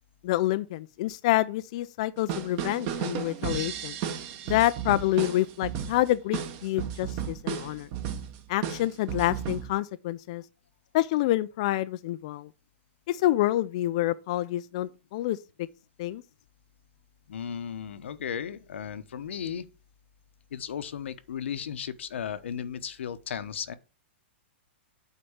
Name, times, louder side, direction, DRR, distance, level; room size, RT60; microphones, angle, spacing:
voice 1, 0.2-4.0 4.5-7.9 8.5-10.4 10.9-12.5 13.1-15.4 16.0-16.2, left 15 dB, 30° left, 0.3 m, -27 dB
sound 1, 2.2-9.7, right 8 dB, 25° right, 1.0 m, -34 dB
voice 2, 17.3-19.7 20.5-23.7, left 8 dB, 80° left, 1.0 m, -35 dB
8.6 x 4.1 x 7.1 m
hypercardioid pair, 175°, 6 cm